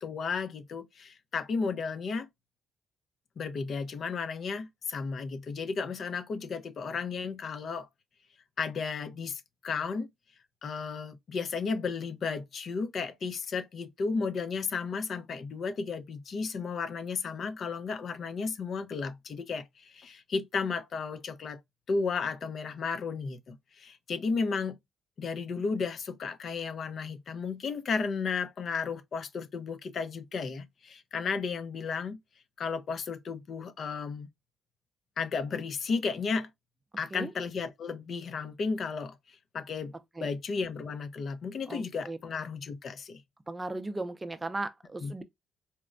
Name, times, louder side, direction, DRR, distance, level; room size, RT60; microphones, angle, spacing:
voice 1, 0.0-2.3 3.4-7.9 8.6-10.1 10.6-21.6 21.9-24.8 25.2-32.2 32.6-34.3 35.2-36.5 37.0-39.1 39.5-39.9 40.2-43.2 45.0-45.1, left 5 dB, 55° left, 0.5 m, -33 dB
voice 2, 41.7-42.2 43.5-45.2, right 2 dB, 20° right, 0.5 m, -36 dB
4.2 x 2.1 x 2.4 m
cardioid pair, 90°, 0 cm